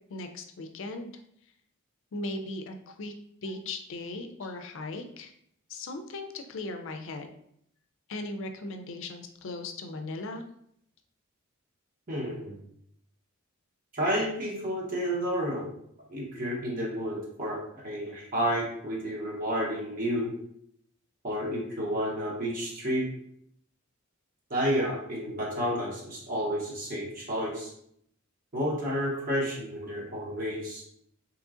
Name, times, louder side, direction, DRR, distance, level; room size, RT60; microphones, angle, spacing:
voice 1, 0.1-1.1 2.1-3.1 3.4-5.3 5.7-7.3 8.1-10.4, left 2 dB, 65° left, 6 dB, 0.4 m, -38 dB
voice 2, 12.1-12.6 13.9-15.7 16.1-17.6 17.8-20.3 21.2-23.1 24.5-27.7 28.5-30.8, equal, 45° right, -4 dB, 0.9 m, -30 dB
3.7 x 2.9 x 2.4 m, 0.70 s
head